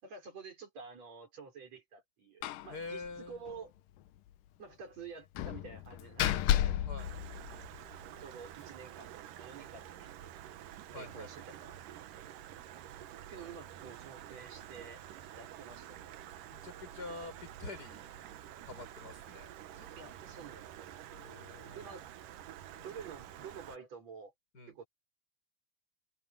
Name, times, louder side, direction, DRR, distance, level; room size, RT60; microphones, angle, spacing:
voice 1, 0.0-3.7 4.6-6.8 8.2-10.3 10.9-11.8 13.3-15.0 15.3-16.2 20.0-20.9 21.7-22.1 22.8-24.3 24.7-24.9, right 5 dB, 50° right, 6.6 m, -49 dB
Slam, 2.4-2.7 3.0-3.1 3.5-3.6 5.4-8.0, left 12 dB, 90° left, 2.5 m, -32 dB
voice 2, 2.7-3.4 6.8-7.1 10.9-11.3 16.5-18.1 18.6-19.5 19.8-20.3 21.1-21.9 24.5-24.7, left 3 dB, 25° left, 7.1 m, -46 dB
Stream, 7.0-23.8, right 11 dB, 80° right, 2.7 m, -49 dB
omnidirectional pair, 3.8 m